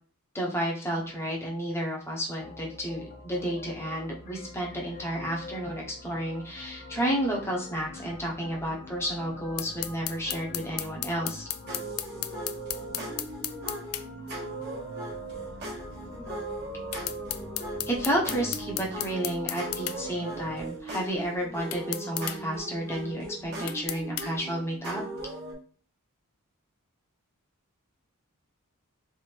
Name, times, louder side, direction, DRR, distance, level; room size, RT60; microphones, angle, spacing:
voice 1, 0.3-11.4 17.9-25.0, right 1 dB, 10° left, -2 dB, 1.0 m, -31 dB
sound 1, 2.3-20.7, left 3 dB, 40° left, 1.0 m, -45 dB
sound 2, 9.6-14.1 16.9-20.0 21.7-22.4 23.7-24.3, left 14 dB, 70° left, 0.4 m, -34 dB
sound 3, 11.7-25.5, right 2 dB, 50° right, 1.4 m, -38 dB
3.5 x 3.5 x 3.3 m, 0.43 s
head